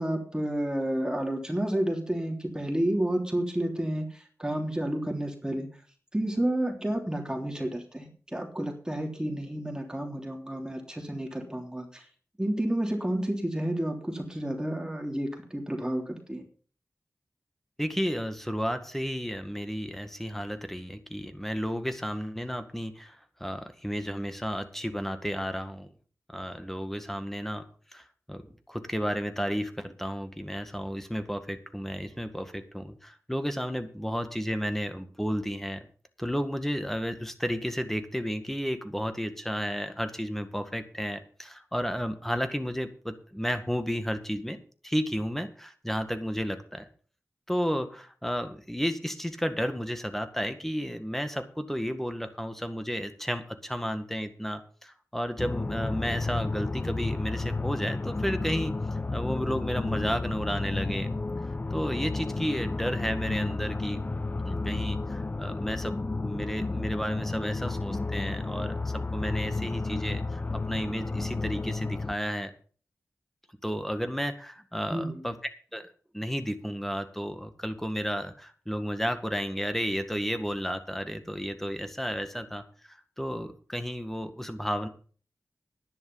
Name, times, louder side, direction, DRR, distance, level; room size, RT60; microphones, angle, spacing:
voice 1, 0.0-5.7 6.1-12.0 12.4-16.4 74.9-75.2, right 1 dB, 15° right, 2 dB, 3.4 m, -30 dB
voice 2, 17.8-25.9 26.3-27.7 27.9-35.9 36.2-46.9 47.5-58.8 59.1-61.2 61.4-64.0 64.5-72.5 73.6-75.4 75.7-75.9 76.1-84.9, equal, 5° left, 8 dB, 1.9 m, -32 dB
sound 1, 55.4-72.1, left 3 dB, 30° left, 0.7 m, -32 dB
11.0 x 10.5 x 5.6 m, 0.41 s
wide cardioid pair, 70°, 6 cm